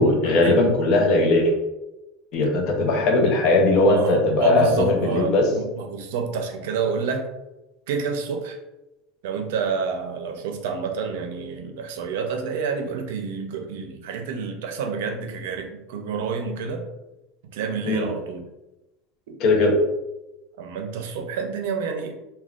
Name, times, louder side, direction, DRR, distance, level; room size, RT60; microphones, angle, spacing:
voice 1, 0.0-1.5 2.3-5.4 17.9-18.1 19.4-19.7, left 2 dB, 50° left, 1 dB, 0.6 m, -19 dB
voice 2, 3.9-7.3 7.9-8.6 9.2-16.8 17.5-18.5 19.3-19.4 20.6-22.2, right 5 dB, 85° right, 4 dB, 0.5 m, -28 dB
3.5 x 2.2 x 2.4 m, 0.99 s
supercardioid pair, 150°, 0 cm